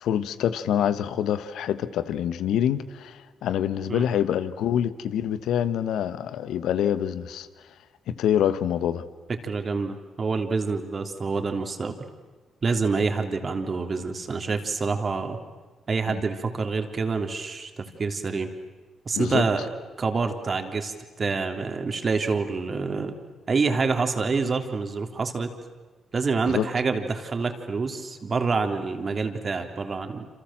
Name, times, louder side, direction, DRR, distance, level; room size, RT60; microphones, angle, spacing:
voice 1, 0.0-7.5 8.1-9.0 16.1-16.2 19.2-19.4 26.5-26.6, left 10 dB, 80° left, 1.2 m, -26 dB
voice 2, 9.4-11.9 12.6-15.4 15.9-18.5 19.0-19.7 20.0-23.2 23.5-25.5 26.1-30.3, right 4 dB, 45° right, 3.3 m, -27 dB
27.5 x 27.5 x 7.5 m
supercardioid pair, 55°, 0 cm